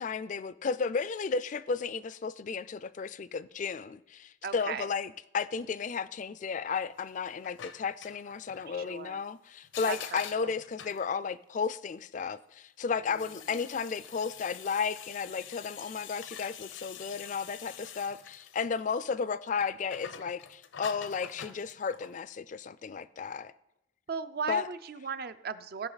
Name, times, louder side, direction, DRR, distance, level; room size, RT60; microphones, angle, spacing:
voice 1, 0.0-23.5 24.5-24.7, left 5 dB, 40° left, 0.3 m, -33 dB
voice 2, 4.4-4.9 8.7-9.2 9.8-10.5 24.1-25.9, right 5 dB, 55° right, 0.5 m, -37 dB
sound 1, 7.0-8.7 9.6-11.1 13.0-19.1 19.5-22.2, left 8 dB, 80° left, 0.6 m, -46 dB
16.0 x 5.7 x 4.0 m
head